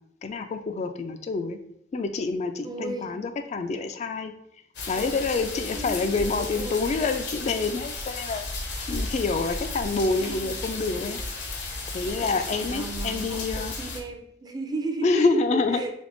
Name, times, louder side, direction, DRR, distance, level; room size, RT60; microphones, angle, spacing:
voice 1, 0.2-1.6 1.9-4.3 4.9-8.5 8.9-11.2 11.9-13.8 15.0-15.8, left 3 dB, 40° left, 8 dB, 0.3 m, -27 dB
voice 2, 2.6-3.2 5.0-5.4 5.7-6.9 10.0-10.7 12.2-15.2 15.7-15.9, right 2 dB, 25° right, 6 dB, 0.5 m, -36 dB
sound 1, 4.7-14.0, left 2 dB, 85° left, 1.0 m, -34 dB
3.5 x 3.3 x 3.8 m, 0.72 s
head